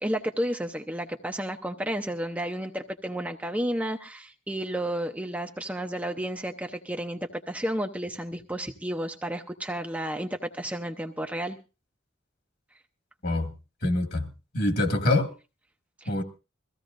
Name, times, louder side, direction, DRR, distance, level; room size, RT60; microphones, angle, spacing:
voice 1, 0.0-11.6 16.0-16.2, right 1 dB, 10° right, 0.7 m, -32 dB
voice 2, 13.8-14.3 14.5-15.3 16.1-16.2, left 1 dB, 55° left, 2.0 m, -25 dB
22.5 x 15.5 x 2.6 m
head